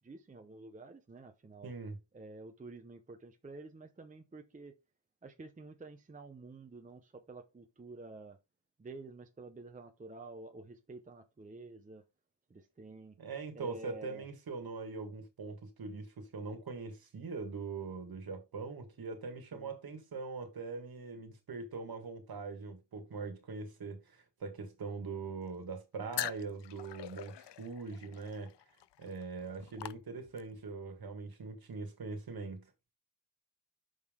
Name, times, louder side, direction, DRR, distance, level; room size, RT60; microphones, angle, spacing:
voice 1, 0.0-1.7 2.1-4.7 5.2-8.4 8.8-12.0 12.5-13.2 13.5-14.3 19.5-19.7, right 3 dB, 20° right, 0.6 m, -50 dB
voice 2, 1.6-2.0 13.2-28.5 29.0-32.7, right 4 dB, 55° right, 1.7 m, -42 dB
sound 1, 26.1-30.6, left 13 dB, 75° left, 0.5 m, -43 dB
6.4 x 5.4 x 3.6 m
wide cardioid pair, 175°, 43 cm